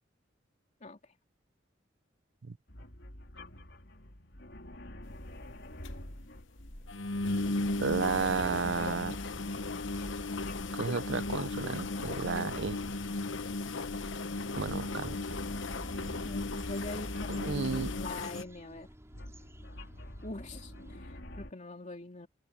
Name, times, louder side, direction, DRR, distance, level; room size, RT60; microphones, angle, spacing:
sound 1, 2.7-18.5 19.1-21.5, left 1 dB, 65° left, 4.0 m, -45 dB
sound 2, 5.1-5.2 5.5-5.6 5.8-5.9 6.3-6.4 6.9-18.4, left 3 dB, 85° left, 1.0 m, -36 dB
voice 1, 7.8-9.2 10.7-12.8 14.5-15.2 17.3-17.9, right 5 dB, 70° right, 0.6 m, -32 dB
sound 3, 11.1-21.0, equal, 15° right, 4.8 m, -56 dB
voice 2, 16.2-18.9 20.2-22.3, left 2 dB, 40° left, 3.2 m, -43 dB
open air
head